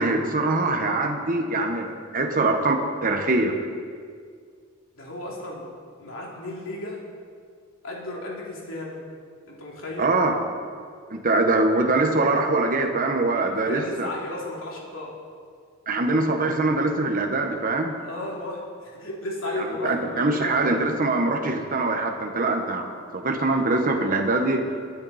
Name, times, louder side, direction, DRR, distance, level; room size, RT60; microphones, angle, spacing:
voice 1, 0.0-3.6 10.0-10.4 11.1-14.1 15.9-17.9 19.6-24.6, right 2 dB, 40° right, 3 dB, 1.3 m, -23 dB
voice 2, 4.9-5.7 6.0-7.0 7.8-9.0 9.5-10.1 13.4-15.2 18.0-20.7, left 2 dB, 70° left, -3 dB, 3.2 m, -34 dB
22.0 x 9.8 x 4.3 m, 2.1 s
head